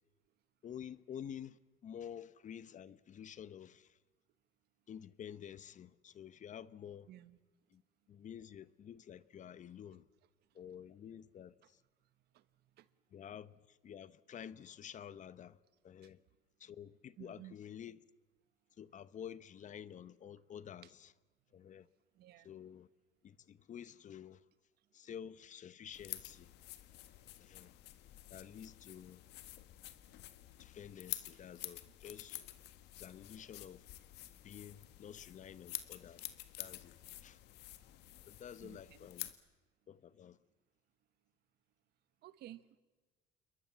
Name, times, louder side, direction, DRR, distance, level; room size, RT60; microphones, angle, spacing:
voice 1, 0.6-4.0 4.9-7.1 7.7-7.8 8.1-10.1 10.5-11.8 13.1-15.6 15.8-16.2 16.6-18.0 18.8-21.1 21.5-21.9 22.4-22.9 23.2-24.4 24.9-26.5 27.4-27.7 28.3-29.3 30.6-32.4 33.0-33.9 34.4-37.4 38.2-39.3 39.9-40.4, left 9 dB, 45° left, 1.0 m, -50 dB
voice 2, 7.1-7.4 12.3-12.4 12.8-12.9 16.0-16.1 17.2-17.5 22.1-22.6 38.6-39.1 42.2-42.8, right 14 dB, 75° right, 1.3 m, -54 dB
sound 1, 25.9-39.3, left 15 dB, 85° left, 1.6 m, -49 dB
28.5 x 22.0 x 7.4 m
cardioid pair, 110°, 17 cm